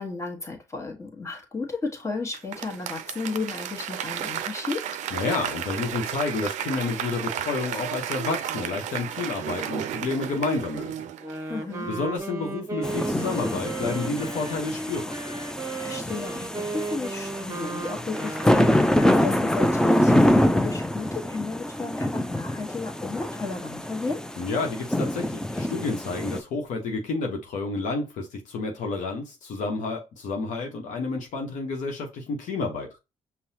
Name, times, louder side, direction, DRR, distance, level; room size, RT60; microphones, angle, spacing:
voice 1, 0.0-4.9 11.5-11.9 15.8-24.3, left 3 dB, 20° left, 1.3 m, -33 dB
Applause / Crowd, 2.3-11.8 12.1-12.2, right 10 dB, 65° right, 0.4 m, -33 dB
voice 2, 5.1-11.0 11.8-15.2 24.4-32.9, left 3 dB, 70° left, 0.9 m, -30 dB
Wind instrument woodwind instrument, 11.1-19.1, right 3 dB, 25° right, 0.8 m, -35 dB
sound 1, 12.8-26.4, left 1 dB, 5° left, 0.5 m, -25 dB
5.4 x 2.2 x 2.8 m
hypercardioid pair, 55°, 13 cm